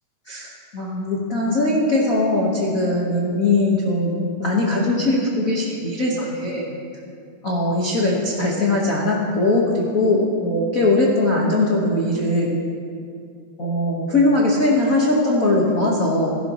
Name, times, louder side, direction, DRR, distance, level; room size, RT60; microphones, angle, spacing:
voice 1, 0.3-6.6 7.4-12.6 13.6-16.4, left 2 dB, 40° left, -4 dB, 1.3 m, -20 dB
17.0 x 15.0 x 3.1 m, 2.3 s
omnidirectional pair, 3.5 m